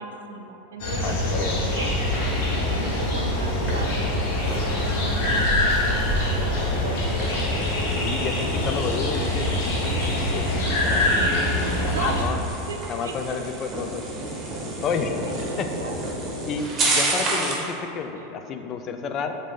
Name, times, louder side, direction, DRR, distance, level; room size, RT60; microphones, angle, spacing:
voice 1, 0.0-1.9 2.5-7.5 11.9-12.2 12.7-13.1 15.3-16.0, right 4 dB, 90° right, 4 dB, 0.3 m, -36 dB
sound 1, 0.8-12.2, left 1 dB, 70° left, 1.0 m, -24 dB
voice 2, 1.0-1.6 8.0-8.3 8.6-11.3 11.8-12.4 12.9-14.0 14.8-16.0 16.4-19.3, left 5 dB, 40° left, 6 dB, 0.3 m, -31 dB
sound 2, 1.9-10.7, equal, 10° left, 1.5 m, -38 dB
sound 3, 7.0-17.7, right 2 dB, 30° right, 1.0 m, -31 dB
5.0 x 2.6 x 3.7 m, 3.0 s
hypercardioid pair, 105°, 0 cm